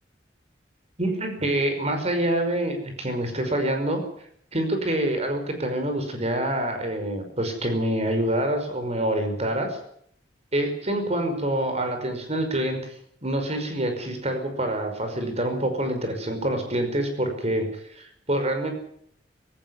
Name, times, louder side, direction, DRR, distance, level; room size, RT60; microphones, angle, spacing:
voice 1, 1.0-4.0 4.5-9.8 10.5-12.9 13.2-18.7, right 1 dB, 35° right, 6 dB, 5.4 m, -26 dB
17.5 x 17.0 x 9.8 m, 0.68 s
head